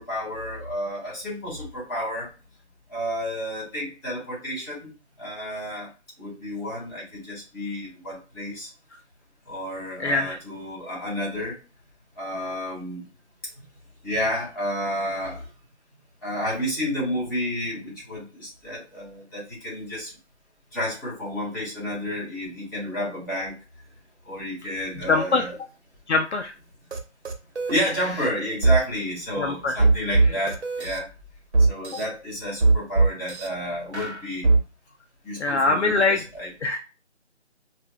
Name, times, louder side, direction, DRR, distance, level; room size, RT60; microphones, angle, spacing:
voice 1, 0.0-2.3 2.9-4.9 5.2-5.9 6.2-8.7 9.5-11.6 12.2-13.1 14.0-15.5 16.2-20.1 20.7-23.5 24.3-25.5 27.7-31.1 31.6-34.5 35.2-36.5, equal, 20° left, -5 dB, 2.0 m, -31 dB
voice 2, 10.0-10.4 25.1-25.4 26.1-26.5 29.4-29.7 35.4-36.2 36.6-36.8, left 3 dB, 65° left, 5 dB, 0.6 m, -22 dB
sound 1, 26.9-27.0 27.2-27.8 28.6-28.8 29.8-31.0 31.5-32.0 32.6-33.5 33.9-34.6, right 3 dB, 65° right, 1.0 m, -19 dB
4.8 x 2.4 x 2.3 m, 0.32 s
figure-of-eight pair, 170°, 36 cm